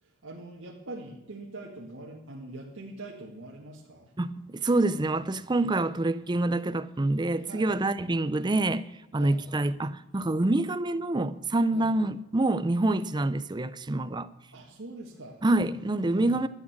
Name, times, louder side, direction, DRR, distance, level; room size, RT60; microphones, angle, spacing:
voice 1, 0.0-4.1 7.4-7.8 9.2-9.4 11.7-11.9 14.5-15.4 16.2-16.5, right 2 dB, 75° right, 1.9 m, -43 dB
voice 2, 4.2-8.9 9.1-14.3 15.4-16.5, right 2 dB, 20° right, 0.5 m, -26 dB
12.5 x 8.7 x 7.2 m
head